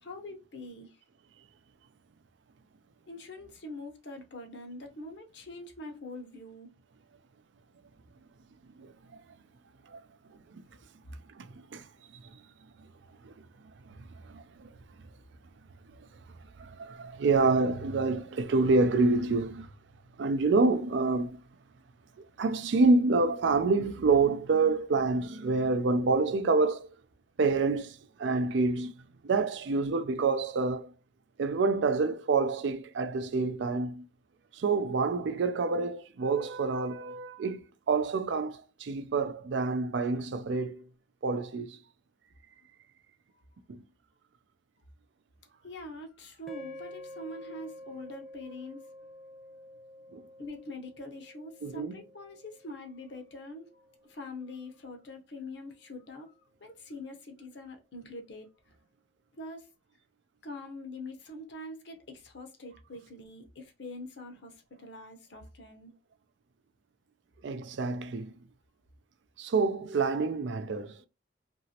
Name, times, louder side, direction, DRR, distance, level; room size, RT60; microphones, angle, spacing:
voice 1, 0.0-1.0 3.1-6.7 45.6-48.8 50.4-53.7 54.1-56.3 56.6-58.5 59.4-59.7 60.4-65.9, left 2 dB, 65° left, 0.8 m, -44 dB
voice 2, 10.3-10.6 11.3-11.9 12.1-12.4 13.2-13.3 13.9-14.8 16.0-16.1 16.6-19.7 20.2-21.4 22.4-26.9 27.4-28.9 29.2-30.9 31.4-34.1 34.5-40.9 41.2-41.8 43.7-43.8 50.1-50.2 51.6-51.9 67.4-68.4 69.4-71.1, right 3 dB, 70° right, 0.4 m, -28 dB
sound 1, 46.5-54.8, left 1 dB, ahead, 0.4 m, -50 dB
3.0 x 2.6 x 2.8 m
head